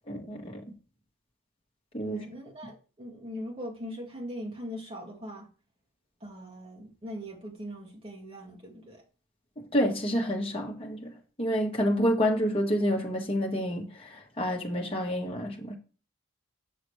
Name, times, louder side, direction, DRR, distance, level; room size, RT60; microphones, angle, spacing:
voice 1, 0.1-0.6 1.9-2.2 9.6-11.1 11.4-15.7, equal, 25° left, 1.6 m, -28 dB
voice 2, 2.0-5.5 6.2-9.0, equal, 25° right, 2.0 m, -40 dB
7.7 x 6.2 x 3.2 m
head